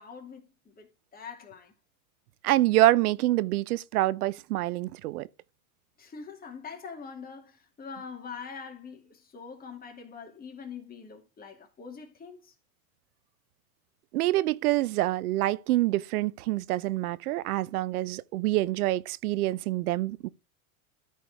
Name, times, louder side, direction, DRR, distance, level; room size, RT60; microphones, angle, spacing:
voice 1, 0.0-1.7 6.0-12.5, left 5 dB, 20° left, 2.6 m, -44 dB
voice 2, 2.4-5.3 14.1-20.3, right 16 dB, 85° right, 0.7 m, -26 dB
13.0 x 4.7 x 3.5 m
supercardioid pair, 130°, 43 cm